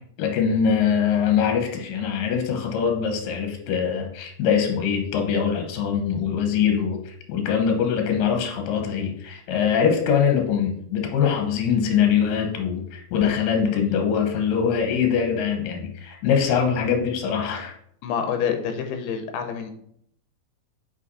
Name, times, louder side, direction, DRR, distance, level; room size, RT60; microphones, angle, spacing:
voice 1, 0.2-17.7, left 7 dB, 70° left, 3 dB, 2.6 m, -23 dB
voice 2, 18.0-19.7, left 7 dB, 90° left, 6 dB, 2.8 m, -27 dB
5.9 x 5.6 x 4.1 m, 0.68 s
omnidirectional pair, 4.5 m